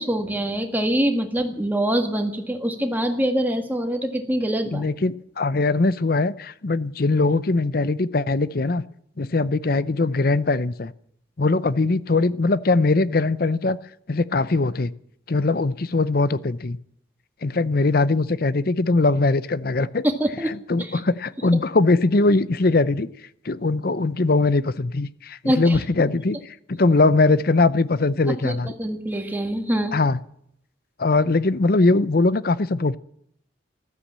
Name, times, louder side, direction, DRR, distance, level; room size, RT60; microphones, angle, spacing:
voice 1, 0.0-4.9 20.0-20.5 20.9-21.0 25.4-25.8 28.3-30.0, right 1 dB, 10° right, 4 dB, 1.7 m, -24 dB
voice 2, 4.7-8.8 9.2-10.9 11.4-13.8 14.1-14.9 15.3-16.8 17.4-20.0 20.5-23.1 23.4-28.7 29.9-30.2 31.0-33.0, left 3 dB, 50° left, 17 dB, 0.6 m, -21 dB
14.0 x 13.0 x 7.5 m, 0.69 s
head